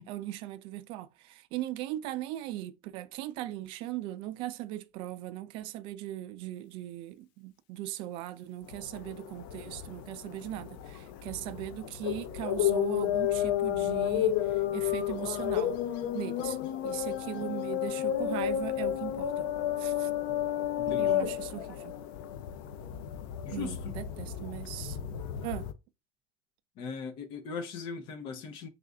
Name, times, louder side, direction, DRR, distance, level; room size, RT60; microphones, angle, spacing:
voice 1, 0.0-15.8 16.1-16.6 16.8-19.5 19.8-20.1 20.9-21.9 23.5-25.0 25.4-25.7, right 14 dB, 55° right, 0.4 m, -39 dB
sound 1, 8.7-25.7, left 11 dB, 85° left, 0.5 m, -32 dB
voice 2, 20.8-21.3 23.4-23.9 26.8-28.7, left 5 dB, 55° left, 0.8 m, -39 dB
3.2 x 2.5 x 3.7 m
cardioid pair, 155°, 10 cm